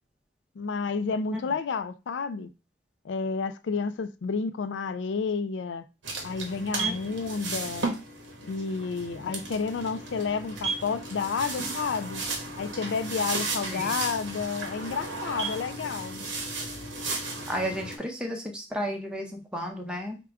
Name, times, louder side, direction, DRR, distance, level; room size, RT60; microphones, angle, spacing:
voice 1, 0.6-2.5 3.0-5.8 6.2-7.9 8.5-12.2 12.6-16.2, left 5 dB, 75° left, 0.4 m, -30 dB
sound 1, 6.0-18.0, right 3 dB, 85° right, 0.9 m, -34 dB
voice 2, 17.5-20.2, equal, 5° right, 0.7 m, -33 dB
4.8 x 2.2 x 3.4 m
head